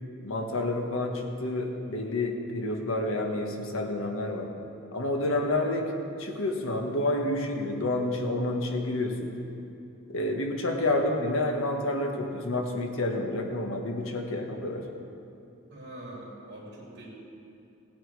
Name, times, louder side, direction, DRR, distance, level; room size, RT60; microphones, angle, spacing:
voice 1, 0.2-4.5 4.9-5.9 6.2-9.3 10.1-14.8, left 2 dB, 80° left, 2 dB, 1.4 m, -29 dB
voice 2, 15.7-17.1, right 1 dB, 55° right, -5 dB, 3.2 m, -44 dB
17.5 x 8.9 x 4.7 m, 2.7 s
head